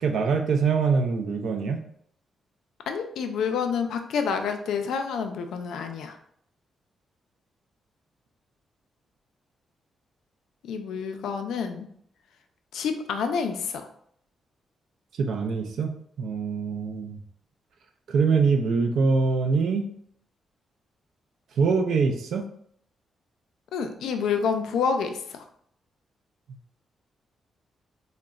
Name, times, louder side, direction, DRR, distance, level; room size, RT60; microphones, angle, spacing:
voice 1, 0.0-1.8 15.2-17.2 18.1-19.9 21.6-22.4, right 4 dB, 70° right, 6 dB, 0.4 m, -24 dB
voice 2, 2.9-6.2 10.6-11.9 12.7-13.9 23.7-25.4, left 6 dB, 90° left, 6 dB, 0.3 m, -28 dB
3.8 x 2.1 x 2.3 m, 0.66 s
cardioid pair, 145°, 0 cm